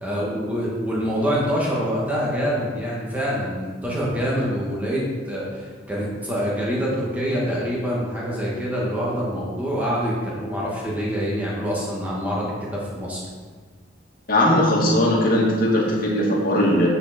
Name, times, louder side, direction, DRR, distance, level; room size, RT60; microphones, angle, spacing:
voice 1, 0.0-13.2, equal, 10° right, -5 dB, 2.1 m, -25 dB
voice 2, 14.3-16.9, left 1 dB, 45° left, -4 dB, 2.3 m, -19 dB
9.7 x 6.7 x 4.5 m, 1.4 s
head